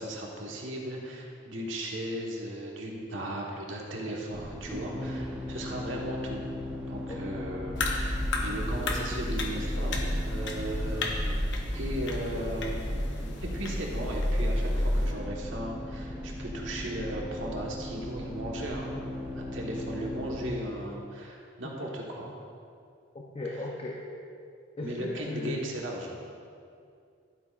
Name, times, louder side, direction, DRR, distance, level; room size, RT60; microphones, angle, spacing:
voice 1, 0.0-6.4 6.9-11.4 11.7-12.9 13.4-19.0 19.3-22.3 24.8-26.2, right 1 dB, 80° right, -1 dB, 1.3 m, -36 dB
sound 1, 4.3-20.5, left 1 dB, 5° right, 0.7 m, -38 dB
sound 2, 7.8-15.1, left 1 dB, 65° left, 0.9 m, -31 dB
voice 2, 23.1-24.0 24.8-25.6, left 2 dB, 30° left, -2 dB, 0.6 m, -36 dB
11.5 x 8.6 x 2.5 m, 2.4 s
head